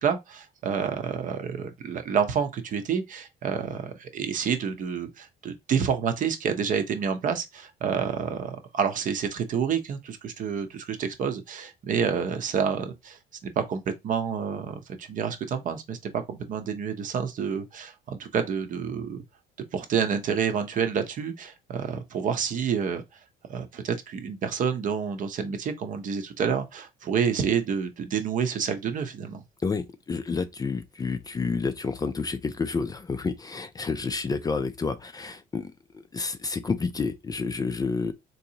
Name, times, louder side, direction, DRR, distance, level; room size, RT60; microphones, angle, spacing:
voice 1, 0.0-19.2 19.7-23.0 23.5-29.4, right 7 dB, 50° right, 0.7 m, -28 dB
voice 2, 29.6-38.1, left 4 dB, 20° left, 0.4 m, -30 dB
3.9 x 2.7 x 2.8 m
cardioid pair, 110°, 17 cm